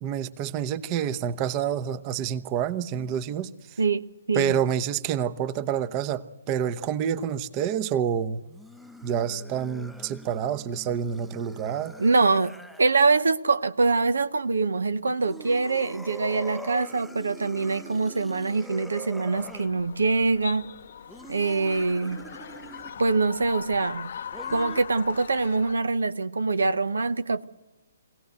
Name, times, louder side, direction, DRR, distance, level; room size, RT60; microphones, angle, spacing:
voice 1, 0.0-3.8 4.3-8.5 9.0-11.9, right 8 dB, 30° right, 0.9 m, -28 dB
voice 2, 3.8-4.5 12.0-20.7 21.3-22.2 23.0-24.1 24.5-27.4, right 3 dB, 80° right, 0.8 m, -24 dB
sound 1, 8.4-13.3 15.1-19.7 21.1-23.0 24.3-24.8, right 1 dB, ahead, 0.6 m, -44 dB
sound 2, 19.3-25.7, left 8 dB, 60° left, 0.7 m, -40 dB
23.5 x 17.0 x 8.0 m
hypercardioid pair, 140°, 0 cm